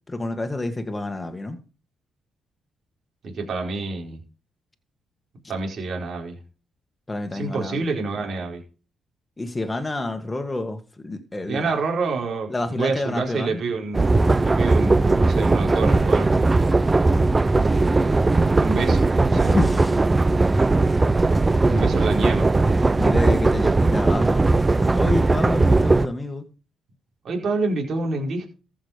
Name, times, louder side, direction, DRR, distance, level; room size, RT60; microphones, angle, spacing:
voice 1, 0.0-1.6 7.1-7.9 9.4-11.8 12.5-13.6 19.3-20.0 23.0-24.6 24.9-26.5, left 2 dB, 20° left, 1.8 m, -28 dB
voice 2, 3.2-4.2 5.5-6.4 7.3-8.6 11.5-14.2 14.4-16.3 18.5-19.5 21.7-22.5 27.2-28.5, right 3 dB, 55° right, 4.6 m, -27 dB
sound 1, 13.9-26.1, right 3 dB, 20° right, 0.6 m, -18 dB
14.5 x 6.4 x 5.1 m
cardioid pair, 90°, 0 cm